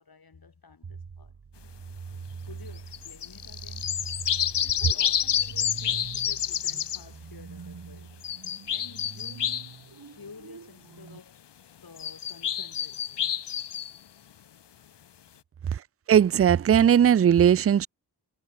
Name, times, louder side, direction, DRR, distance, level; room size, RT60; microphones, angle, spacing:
voice 1, 0.0-1.3 2.5-4.0 4.4-9.7 10.1-13.9 15.6-15.7, left 5 dB, 60° left, 6.1 m, -51 dB
sound 1, 0.8-11.2, right 5 dB, 55° right, 2.4 m, -44 dB
sound 2, 2.9-7.0 8.2-9.7 12.0-14.0, left 9 dB, 90° left, 1.3 m, -29 dB
voice 2, 16.1-17.9, right 9 dB, 35° right, 0.4 m, -18 dB
cardioid pair, 50°, 40 cm